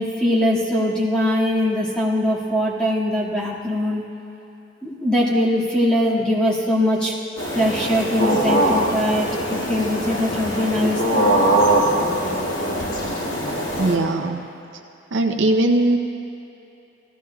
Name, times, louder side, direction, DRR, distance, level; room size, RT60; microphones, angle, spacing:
voice 1, 0.0-4.0 4.8-7.1 7.5-11.4, left 1 dB, 5° left, -8 dB, 2.0 m, -21 dB
sound 1, 7.4-13.9, right 1 dB, 75° left, 2.2 m, -22 dB
voice 2, 13.8-14.4 15.1-16.0, right 2 dB, 65° right, 4 dB, 0.6 m, -19 dB
18.0 x 14.5 x 2.3 m, 2.9 s
head